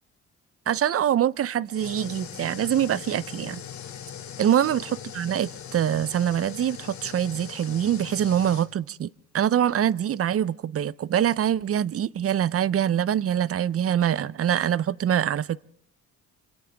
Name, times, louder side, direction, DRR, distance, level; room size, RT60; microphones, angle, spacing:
voice 1, 0.7-3.6 4.4-15.6, right 10 dB, 50° right, 0.7 m, -24 dB
sound 1, 1.7-8.7, left 9 dB, 65° left, 2.9 m, -40 dB
27.5 x 27.0 x 3.5 m
cardioid pair, 90°, 30 cm